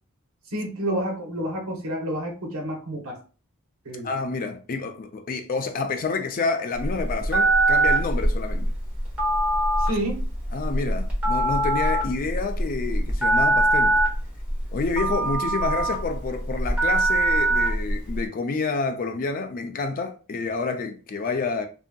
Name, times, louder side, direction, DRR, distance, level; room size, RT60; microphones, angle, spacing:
voice 1, 0.5-3.2 3.8-4.1 9.8-10.2, equal, 75° right, 0.8 m, -29 dB
voice 2, 4.0-8.7 10.5-14.0 14.7-21.7, left 4 dB, 40° left, 0.4 m, -28 dB
Telephone, 6.8-18.2, right 1 dB, 10° right, 1.0 m, -22 dB
2.7 x 2.6 x 2.2 m
head